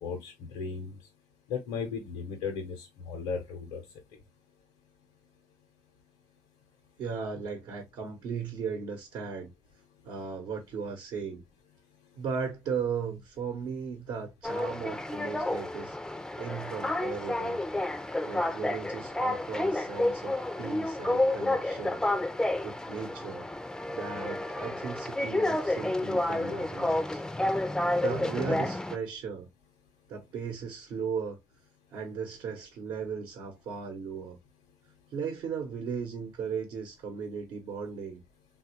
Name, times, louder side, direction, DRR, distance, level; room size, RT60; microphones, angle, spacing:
voice 1, 0.0-0.9 1.5-3.8, left 5 dB, 85° left, 0.7 m, -36 dB
voice 2, 7.0-9.5 10.0-11.4 12.1-16.0 16.4-17.6 18.2-22.0 22.6-23.5 23.9-27.2 28.0-29.5 30.1-31.4 31.9-34.4 35.1-38.2, right 6 dB, 75° right, 0.8 m, -36 dB
sound 1, 14.4-29.0, left 1 dB, 10° left, 0.4 m, -30 dB
3.2 x 2.3 x 2.8 m
cardioid pair, 85°, 8 cm